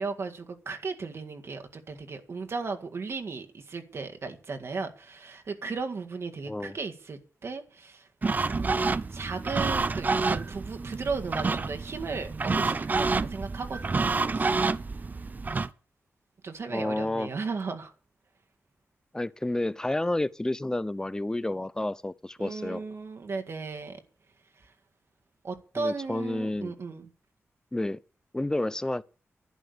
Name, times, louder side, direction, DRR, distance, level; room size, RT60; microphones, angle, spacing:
voice 1, 0.0-8.1 8.5-8.8 9.1-14.6 16.4-17.9 22.4-24.0 24.6-24.7 25.4-27.1, right 4 dB, 60° right, 1.9 m, -36 dB
sound 1, 8.2-15.7, right 4 dB, 35° right, 0.7 m, -28 dB
voice 2, 16.7-17.3 19.1-22.8 25.8-26.7 27.7-28.0 28.3-29.0, left 1 dB, 15° left, 0.6 m, -30 dB
11.5 x 11.0 x 6.8 m
wide cardioid pair, 115°, 5 cm